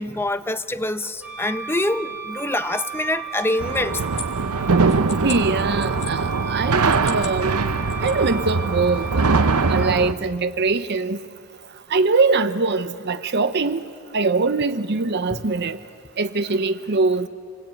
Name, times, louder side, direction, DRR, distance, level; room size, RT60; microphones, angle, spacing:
voice 1, 0.0-4.0 15.3-15.4, left 1 dB, 10° left, 0.6 m, -25 dB
Wind instrument woodwind instrument, 1.2-10.0, right 6 dB, 5° right, 1.2 m, -35 dB
sound 1, 3.3-6.1 6.8-7.4 7.7-8.5, left 5 dB, 30° left, 1.9 m, -38 dB
sound 2, 3.6-10.1, right 4 dB, 85° right, 0.8 m, -22 dB
voice 2, 5.2-7.6 8.0-9.2 9.7-11.2 11.9-15.8 16.2-17.3, right 3 dB, 50° right, 0.7 m, -22 dB
28.0 x 21.0 x 9.0 m
head